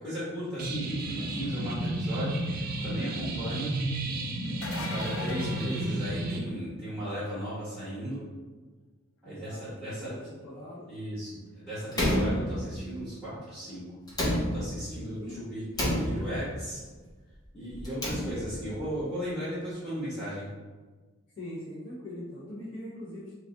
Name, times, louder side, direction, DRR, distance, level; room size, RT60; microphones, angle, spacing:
voice 1, 0.0-2.4 2.8-3.7 4.7-8.2 9.2-10.1 10.9-13.8 14.5-16.8 17.5-20.5, equal, 5° right, -11 dB, 1.0 m, -36 dB
sound 1, 0.6-6.4, right 1 dB, 45° right, 0.4 m, -32 dB
sound 2, 4.4-6.7 12.2-12.3 14.1-14.2, left 3 dB, 75° left, 0.5 m, -40 dB
voice 2, 9.2-10.9 15.2-15.4 21.4-23.3, left 1 dB, 50° left, -9 dB, 1.1 m, -42 dB
Slam, 11.9-13.1 14.1-15.0 15.7-16.6 17.8-18.7, equal, 20° left, 0.7 m, -29 dB
4.1 x 2.1 x 3.8 m, 1.3 s
head